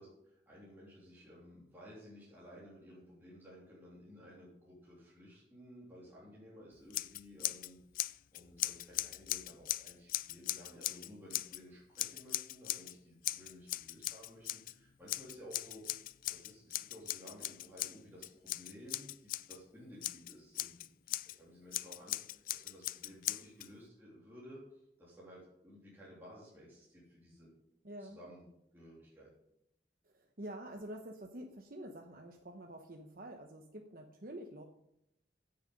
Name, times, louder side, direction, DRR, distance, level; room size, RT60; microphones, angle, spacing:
voice 1, 0.0-15.8 16.3-27.5 28.0-29.3, equal, 10° right, -7 dB, 3.3 m, -55 dB
Scissors, 6.9-7.7 7.9-11.6 12.0-12.9 13.2-14.7 15.1-19.6 20.0-21.3 21.7-23.7, left 15 dB, 50° left, 0.3 m, -39 dB
voice 2, 27.8-28.2 30.0-34.6, right 1 dB, 55° right, 3 dB, 1.0 m, -47 dB
15.5 x 6.7 x 5.3 m, 0.81 s
head